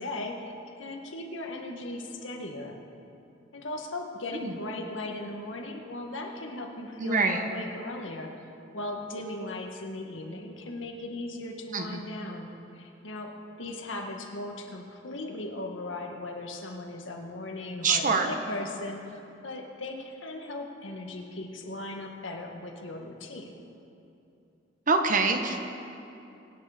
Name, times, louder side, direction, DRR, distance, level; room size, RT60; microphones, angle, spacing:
voice 1, 0.0-2.8 3.5-8.3 8.7-23.5, left 2 dB, 80° left, 2 dB, 1.8 m, -38 dB
voice 2, 7.0-7.4 11.7-12.0 17.8-18.3 24.9-25.7, right 4 dB, 45° right, 5 dB, 1.2 m, -25 dB
23.5 x 9.7 x 5.1 m, 2.8 s
head